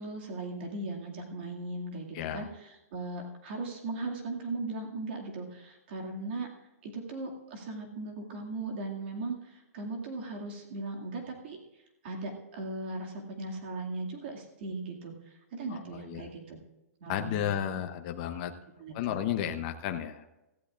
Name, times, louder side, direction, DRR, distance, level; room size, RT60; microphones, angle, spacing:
voice 1, 0.0-6.5 6.8-11.6 12.0-16.6 17.0-17.5 18.8-19.2, right 2 dB, 40° right, 0 dB, 2.2 m, -38 dB
voice 2, 2.1-2.5 15.7-16.2 17.1-18.5 18.9-20.2, left 10 dB, 30° left, 6 dB, 0.7 m, -33 dB
17.0 x 14.5 x 2.5 m, 0.96 s
hypercardioid pair, 170°, 9 cm